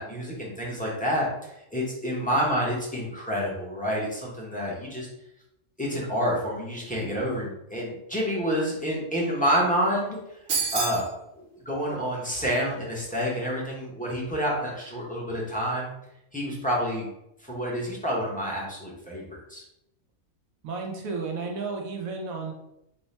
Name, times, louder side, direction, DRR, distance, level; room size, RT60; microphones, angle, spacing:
voice 1, 0.0-5.1 5.8-10.2 10.7-11.1 11.3-15.9 16.3-17.1 17.4-19.2 19.5-19.6, equal, 5° left, -5 dB, 0.7 m, -28 dB
sound 1, 10.5-11.1, right 4 dB, 50° right, 1.0 m, -27 dB
voice 2, 20.6-22.5, right 4 dB, 85° right, 1 dB, 1.2 m, -32 dB
3.6 x 2.2 x 4.1 m, 0.84 s
omnidirectional pair, 1.4 m